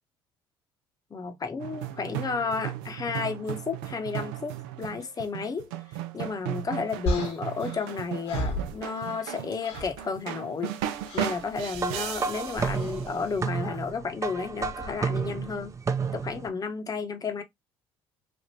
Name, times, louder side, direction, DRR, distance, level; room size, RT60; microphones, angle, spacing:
voice 1, 1.1-5.7 6.1-15.7 16.1-17.4, left 5 dB, 30° left, 0.9 m, -32 dB
sound 1, 1.6-13.3, right 11 dB, 75° right, 0.5 m, -36 dB
sound 2, 7.1-9.3 9.6-10.0 11.1-11.4 12.7-13.0, left 1 dB, 60° left, 1.2 m, -33 dB
sound 3, 11.7-16.5, right 5 dB, 25° right, 0.6 m, -31 dB
3.3 x 2.5 x 2.8 m
hypercardioid pair, 65°, 12 cm